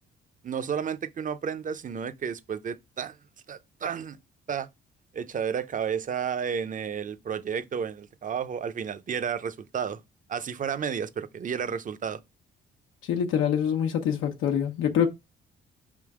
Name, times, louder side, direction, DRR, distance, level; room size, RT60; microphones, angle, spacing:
voice 1, 0.4-3.2 3.5-4.2 4.5-4.7 5.1-10.0 10.3-12.2, right 7 dB, 40° right, 0.7 m, -32 dB
voice 2, 13.1-15.1, left 8 dB, 90° left, 1.1 m, -25 dB
5.4 x 3.7 x 4.8 m
cardioid pair, 90°, 20 cm